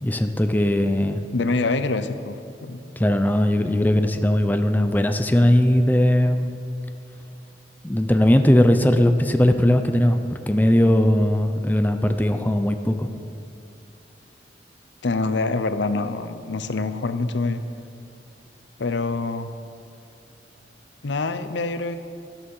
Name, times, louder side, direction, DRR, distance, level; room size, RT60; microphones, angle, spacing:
voice 1, 0.0-1.2 3.0-6.5 7.8-10.2 10.5-13.1, left 1 dB, 10° left, 7 dB, 0.5 m, -19 dB
voice 2, 1.3-2.8 15.0-17.6 18.8-19.5 21.0-22.0, left 3 dB, 75° left, 11 dB, 0.7 m, -25 dB
13.0 x 12.0 x 5.5 m, 2.7 s
head